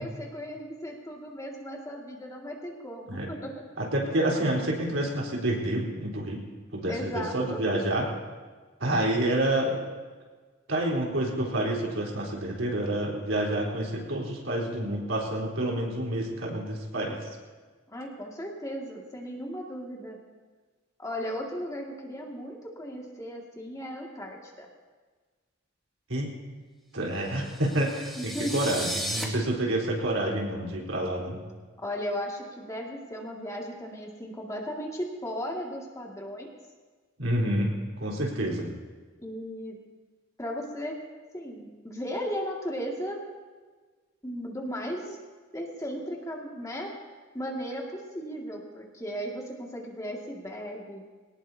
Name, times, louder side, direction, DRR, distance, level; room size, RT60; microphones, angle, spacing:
voice 1, 0.0-3.6 6.9-7.6 17.9-20.2 21.0-24.7 28.2-28.5 31.8-36.5 39.2-39.8 40.4-41.0 41.3-43.2 44.2-45.2 45.5-46.9 47.3-51.0, equal, 15° left, -1 dB, 2.1 m, -36 dB
voice 2, 3.8-6.4 6.7-8.1 8.8-9.8 10.7-17.2 26.1-26.4 26.9-31.4 37.2-37.7 38.0-38.7, right 1 dB, 85° right, -2 dB, 4.0 m, -28 dB
sound 1, 27.3-29.2, equal, ahead, 1.9 m, -35 dB
23.0 x 18.5 x 2.8 m, 1.4 s
head